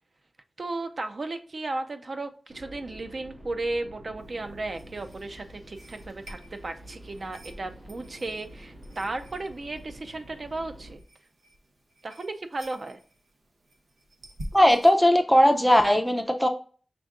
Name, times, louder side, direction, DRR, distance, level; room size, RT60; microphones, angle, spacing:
voice 1, 0.6-11.0 12.0-13.0, right 2 dB, 50° right, 7 dB, 0.5 m, -35 dB
sound 1, 2.5-10.9, right 1 dB, 70° right, 1.8 m, -48 dB
sound 2, 4.2-15.0, equal, 85° right, 0.9 m, -48 dB
voice 2, 14.5-16.5, equal, 5° left, 5 dB, 0.4 m, -19 dB
6.0 x 3.5 x 2.4 m, 0.42 s
wide cardioid pair, 110°, 0 cm